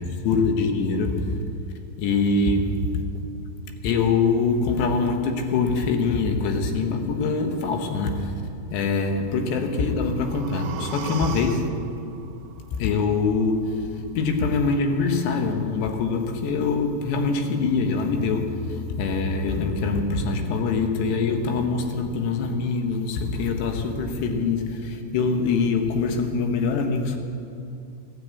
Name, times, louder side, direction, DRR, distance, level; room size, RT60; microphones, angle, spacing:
voice 1, 0.2-1.4 2.0-3.0 3.8-8.3 8.7-11.7 12.7-27.2, left 4 dB, 90° left, 3.4 m, -24 dB
sound 1, 9.6-13.6 13.9-14.0, right 8 dB, 75° right, 2.2 m, -39 dB
17.5 x 9.8 x 8.4 m
omnidirectional pair, 4.8 m